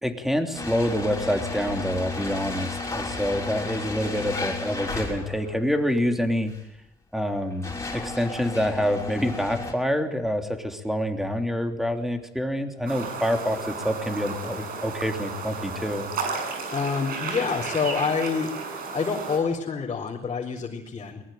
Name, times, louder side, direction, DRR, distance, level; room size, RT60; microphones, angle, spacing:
voice 1, 0.0-6.5 7.1-16.1, equal, ahead, 5 dB, 3.3 m, -27 dB
sound 1, 0.5-5.6 6.5-6.6 7.3-9.7, left 3 dB, 15° left, 6.0 m, -33 dB
sound 2, 12.9-19.4, right 4 dB, 60° right, 7.3 m, -33 dB
voice 2, 16.7-18.5 18.9-21.2, left 5 dB, 35° left, -2 dB, 4.1 m, -27 dB
22.5 x 20.5 x 9.3 m, 0.82 s
cardioid pair, 110°, 17 cm